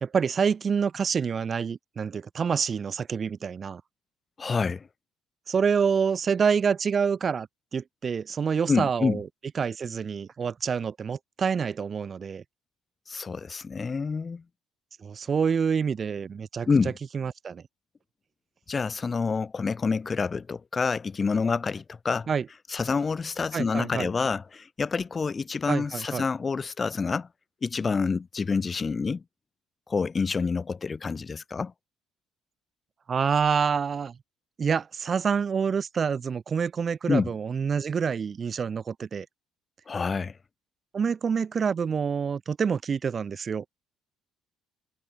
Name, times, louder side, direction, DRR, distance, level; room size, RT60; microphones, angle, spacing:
voice 1, 0.0-3.8 5.5-7.5 7.7-9.3 9.5-12.4 15.0-16.7 17.1-17.6 22.3-22.5 23.5-24.1 25.7-26.2 33.1-34.1 34.6-39.3 40.9-43.6, right 6 dB, 40° right, 2.6 m, -27 dB
voice 2, 4.4-4.9 8.7-9.2 13.1-14.4 16.7-16.9 18.7-22.3 22.7-27.3 27.6-29.2 29.9-31.7 37.1-37.3 39.9-40.3, left 5 dB, 35° left, 4.5 m, -27 dB
supercardioid pair, 70°, 0 cm